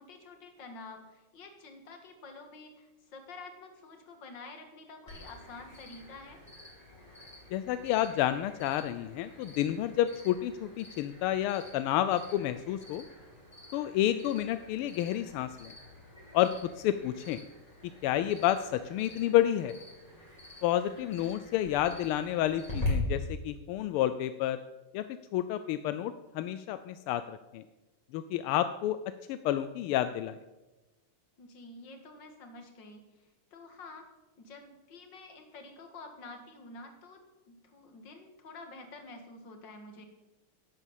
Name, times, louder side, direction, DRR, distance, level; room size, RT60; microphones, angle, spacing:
voice 1, 0.0-6.4 21.0-21.3 31.4-34.1 34.4-40.1, left 3 dB, 60° left, 5 dB, 2.4 m, -49 dB
Cricket, 5.1-22.9, left 2 dB, 15° left, 5.1 m, -48 dB
voice 2, 7.5-13.0 13.7-15.7 16.3-16.5 16.8-17.4 18.0-19.7 20.6-24.6 24.9-25.0 25.3-27.6 28.1-29.0 29.3-30.4, left 12 dB, 85° left, 12 dB, 1.5 m, -30 dB
11.0 x 9.7 x 7.4 m, 1.1 s
omnidirectional pair, 2.4 m